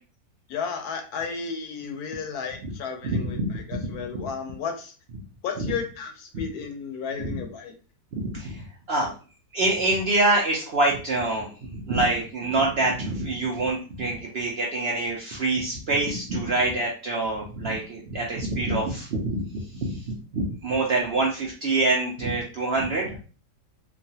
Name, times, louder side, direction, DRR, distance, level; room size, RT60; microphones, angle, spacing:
voice 1, 0.5-4.9 5.4-7.7, left 6 dB, 75° left, 4 dB, 1.0 m, -33 dB
voice 2, 3.0-3.9 4.1-4.3 5.6-5.7 7.2-7.4 8.1-9.1 9.5-23.3, right 2 dB, 80° right, -2 dB, 0.5 m, -26 dB
3.0 x 2.2 x 2.7 m, 0.37 s
omnidirectional pair, 1.8 m